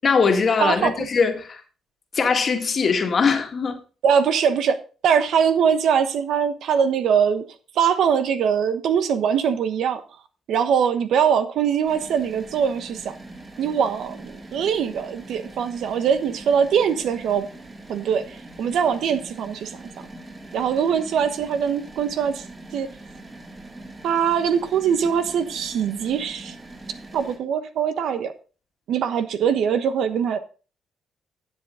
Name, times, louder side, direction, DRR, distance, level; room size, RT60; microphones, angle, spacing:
voice 1, 0.0-1.6 2.1-3.8, left 5 dB, 45° left, 1.9 m, -21 dB
voice 2, 0.6-1.1 4.0-4.8 5.0-7.5 7.7-10.0 10.5-13.1 13.6-17.5 17.9-19.8 20.5-22.4 22.7-22.9 24.0-26.5 27.1-28.3 28.9-30.4, right 7 dB, 75° right, 1.1 m, -22 dB
sound 1, 11.8-27.4, right 2 dB, 25° right, 3.0 m, -42 dB
12.0 x 7.4 x 3.7 m
cardioid pair, 90°, 0 cm